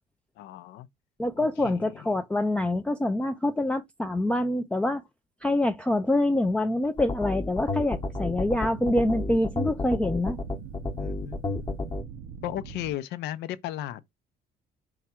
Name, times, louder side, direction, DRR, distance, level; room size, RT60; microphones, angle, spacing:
voice 1, 0.4-0.9 1.6-1.8 11.0-11.8 12.4-14.1, left 13 dB, 80° left, 0.5 m, -35 dB
voice 2, 1.2-5.0 5.4-10.4, left 1 dB, 5° left, 0.3 m, -26 dB
sound 1, 7.0-12.0, left 2 dB, 25° left, 0.9 m, -31 dB
sound 2, 8.0-12.9, right 7 dB, 75° right, 0.5 m, -42 dB
4.8 x 2.3 x 4.2 m
cardioid pair, 110°, 17 cm